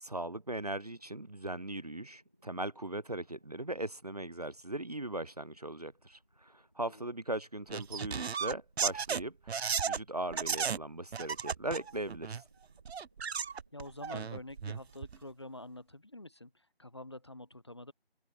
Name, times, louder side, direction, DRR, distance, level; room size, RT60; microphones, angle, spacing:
voice 1, 0.0-12.4, right 1 dB, 40° right, 0.7 m, -39 dB
sound 1, 0.8-15.0, equal, 5° right, 1.1 m, -71 dB
sound 2, 7.7-10.0 10.3-10.8 11.1-12.4 12.9-15.2, right 6 dB, 85° right, 0.6 m, -34 dB
voice 2, 13.7-16.5 16.8-17.9, left 1 dB, 25° left, 1.0 m, -47 dB
open air
figure-of-eight pair, 175°, 31 cm